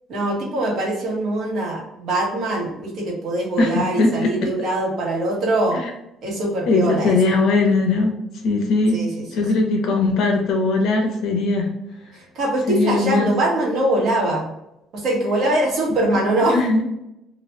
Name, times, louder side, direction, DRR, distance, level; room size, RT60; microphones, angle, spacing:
voice 1, 0.1-5.8 6.2-7.1 8.9-9.4 12.1-14.5 14.9-16.6, right 1 dB, 60° right, -2 dB, 1.2 m, -22 dB
voice 2, 3.6-4.3 5.7-5.9 6.7-8.2 8.4-9.0 9.3-11.7 12.7-13.3 16.5-16.9, left 3 dB, 65° left, 2 dB, 0.8 m, -19 dB
3.1 x 2.5 x 3.2 m, 0.85 s
cardioid pair, 150°, 0 cm